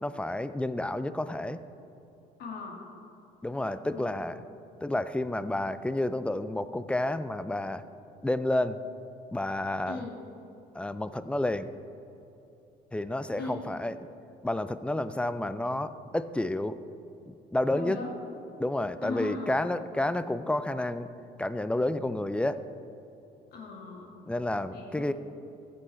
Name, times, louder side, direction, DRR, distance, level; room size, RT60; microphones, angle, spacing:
voice 1, 0.0-1.6 3.4-4.4 4.8-7.8 8.2-8.8 9.3-10.1 10.7-11.7 12.9-14.1 14.4-16.8 17.3-18.0 18.6-21.1 21.4-22.6 24.3-25.1, left 1 dB, 5° left, 13 dB, 0.4 m, -30 dB
voice 2, 2.4-2.8 3.9-4.1 9.8-10.1 13.4-13.6 17.7-18.2 19.0-19.6 23.5-24.2 24.7-25.1, left 3 dB, 70° left, -1 dB, 2.3 m, -38 dB
14.5 x 7.9 x 4.3 m, 2.9 s
cardioid pair, 110°, 17 cm